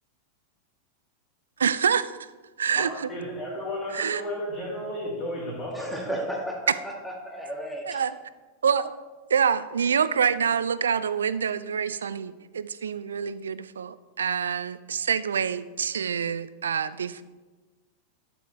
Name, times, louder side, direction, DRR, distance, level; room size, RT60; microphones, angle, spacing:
voice 1, 1.6-2.1 2.6-3.1 3.9-4.2 7.9-8.2 8.6-8.9 9.3-17.2, right 7 dB, 70° right, 15 dB, 0.4 m, -26 dB
voice 2, 2.8-6.3, equal, 25° left, -8 dB, 2.7 m, -33 dB
voice 3, 5.7-8.0, right 1 dB, ahead, 0 dB, 1.7 m, -34 dB
12.0 x 7.0 x 3.2 m, 1.3 s
figure-of-eight pair, 90°, 0 cm